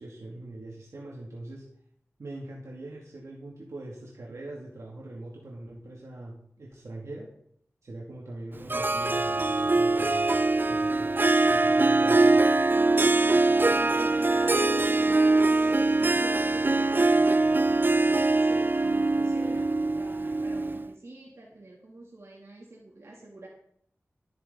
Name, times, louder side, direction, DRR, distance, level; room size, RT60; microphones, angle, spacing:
voice 1, 0.0-1.7 2.2-7.3 7.8-10.4 10.7-11.2 11.5-12.6, right 2 dB, 85° right, -4 dB, 2.5 m, -42 dB
Harp, 8.7-20.9, right 2 dB, 40° right, 0.5 m, -23 dB
voice 2, 13.6-17.9 18.3-23.5, right 2 dB, 65° right, -3 dB, 3.0 m, -45 dB
13.0 x 10.0 x 4.0 m, 0.65 s
wide cardioid pair, 55°, 5 cm